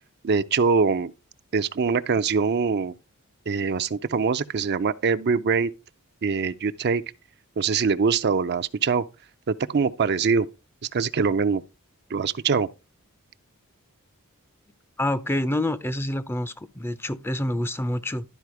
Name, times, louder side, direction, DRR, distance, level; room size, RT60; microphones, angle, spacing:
voice 1, 0.2-1.1 1.5-2.9 3.5-5.7 6.2-7.0 7.6-9.0 9.5-10.5 10.9-11.6 12.1-12.7, right 5 dB, 50° right, 0.5 m, -23 dB
voice 2, 15.0-18.2, left 1 dB, 10° left, 0.5 m, -27 dB
12.0 x 4.9 x 4.8 m
head